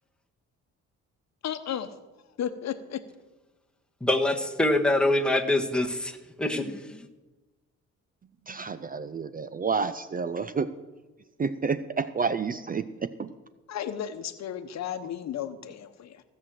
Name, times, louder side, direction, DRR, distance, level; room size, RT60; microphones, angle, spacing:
voice 1, 1.4-1.9 2.4-3.0 13.7-16.2, left 9 dB, 60° left, 9 dB, 1.0 m, -34 dB
voice 2, 4.0-7.1, left 1 dB, 5° left, 2 dB, 1.5 m, -25 dB
voice 3, 8.5-10.7 11.4-13.3, right 5 dB, 30° right, 13 dB, 0.5 m, -30 dB
16.0 x 6.4 x 7.6 m, 1.2 s
cardioid pair, 90°, 30 cm